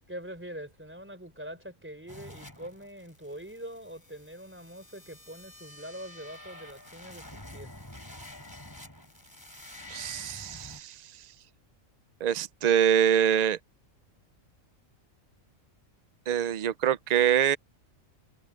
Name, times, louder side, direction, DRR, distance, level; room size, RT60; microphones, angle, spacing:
voice 1, 0.1-7.7, equal, 10° right, 4.2 m, -43 dB
sound 1, 2.1-10.8, left 1 dB, 15° left, 3.5 m, -48 dB
voice 2, 9.9-11.0 12.2-13.6 16.3-17.6, right 9 dB, 90° right, 0.3 m, -24 dB
omnidirectional pair, 1.4 m